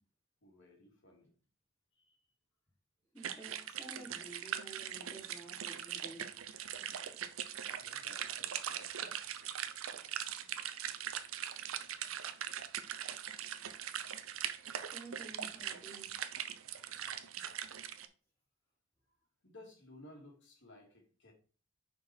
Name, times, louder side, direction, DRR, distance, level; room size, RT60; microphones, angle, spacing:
voice 1, 0.4-1.3 2.0-2.2 7.8-9.1 19.4-21.3, left 1 dB, 65° left, 2.3 m, -58 dB
voice 2, 3.1-6.3 6.7-6.8 14.9-16.2 17.4-17.5, right 2 dB, 10° left, 3.5 m, -52 dB
sound 1, 3.2-18.1, right 9 dB, 90° right, 0.7 m, -41 dB
6.2 x 4.6 x 4.4 m
head